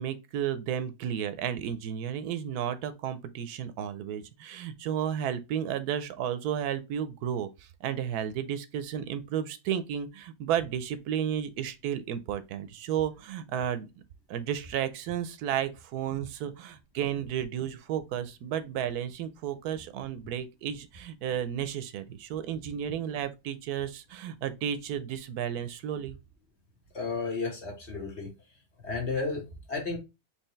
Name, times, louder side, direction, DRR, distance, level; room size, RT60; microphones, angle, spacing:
voice 1, 0.0-13.9 14.3-26.2, right 9 dB, 85° right, 1.1 m, -33 dB
voice 2, 26.9-28.3 28.8-30.0, left 4 dB, 50° left, 1.6 m, -33 dB
4.5 x 3.2 x 3.0 m
omnidirectional pair, 1.6 m